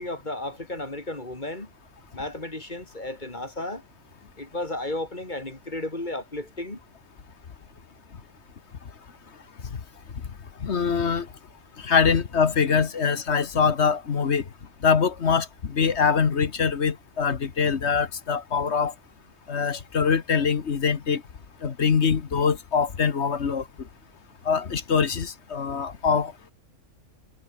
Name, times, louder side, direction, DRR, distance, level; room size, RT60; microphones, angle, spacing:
voice 1, 0.0-1.7 2.1-3.8 4.4-6.8, left 2 dB, 35° left, 3.4 m, -33 dB
voice 2, 10.6-11.3 11.8-14.4 14.8-18.9 19.5-21.2 21.6-23.6 24.4-26.3, left 6 dB, 55° left, 1.6 m, -23 dB
omnidirectional pair, 1.4 m